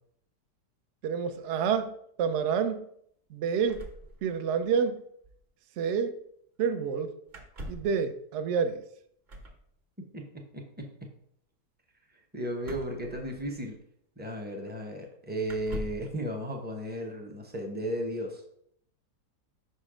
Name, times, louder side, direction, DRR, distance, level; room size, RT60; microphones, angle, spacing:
voice 1, 1.0-2.9 3.3-3.8 4.2-5.0 5.8-6.2 6.6-7.1 7.7-8.8, right 6 dB, 65° right, 8 dB, 0.7 m, -28 dB
sound 1, 3.7-4.7 5.0-5.1 5.2-5.5 7.3-8.0 9.3-9.6 12.6-13.8 14.6-14.7 15.4-16.1, equal, 35° right, 0.9 m, -42 dB
voice 2, 10.1-11.1 12.3-13.8 14.2-18.4, equal, 15° right, 1 dB, 0.3 m, -35 dB
5.7 x 4.2 x 4.9 m, 0.69 s
omnidirectional pair, 1.8 m